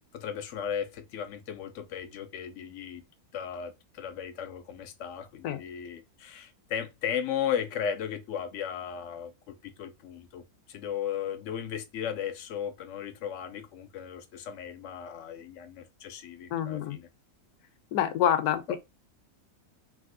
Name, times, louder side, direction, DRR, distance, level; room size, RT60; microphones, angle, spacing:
voice 1, 0.1-3.0 3.3-10.4 10.7-17.1 18.7-18.8, left 8 dB, 65° left, 0.8 m, -36 dB
voice 2, 16.5-17.0 17.9-18.8, left 10 dB, 85° left, 1.1 m, -27 dB
3.3 x 2.7 x 2.6 m
omnidirectional pair, 1.6 m